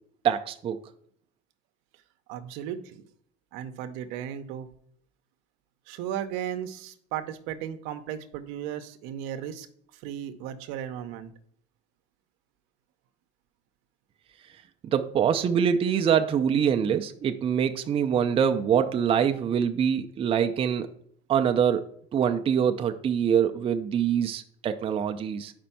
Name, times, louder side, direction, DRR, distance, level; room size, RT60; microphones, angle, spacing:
voice 1, 0.2-0.8 14.9-20.9 21.3-21.8 22.1-25.5, right 8 dB, 25° right, 8 dB, 0.4 m, -24 dB
voice 2, 2.3-3.0 3.5-4.7 5.9-9.7 10.0-11.3, right 10 dB, 80° right, 9 dB, 0.7 m, -35 dB
5.1 x 4.3 x 5.7 m, 0.63 s
cardioid pair, 125°, 20 cm